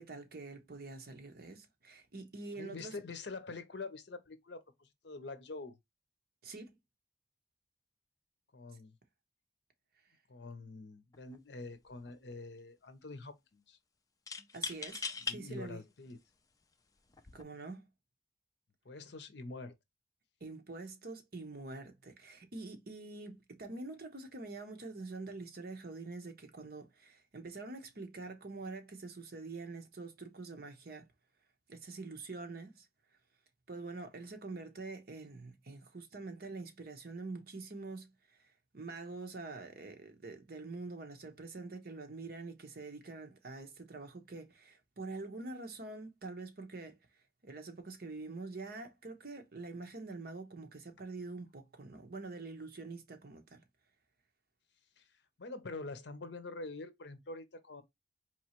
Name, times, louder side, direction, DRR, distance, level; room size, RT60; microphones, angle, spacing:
voice 1, 0.0-2.9 6.4-6.8 14.5-15.8 17.3-17.9 20.4-31.0 31.7-32.9 33.7-38.1 38.4-38.5 38.7-47.0 47.4-53.6, right 3 dB, 55° right, 0.9 m, -45 dB
voice 2, 2.6-5.8 8.5-8.9 10.3-13.8 15.2-16.2 18.8-19.7 55.0-55.1 55.4-57.8, left 3 dB, 65° left, 0.7 m, -45 dB
sound 1, 11.1-11.4 11.7-12.3 14.3-15.4 16.1-16.2 17.1-17.4, left 5 dB, 20° left, 0.4 m, -40 dB
4.4 x 3.1 x 2.9 m
head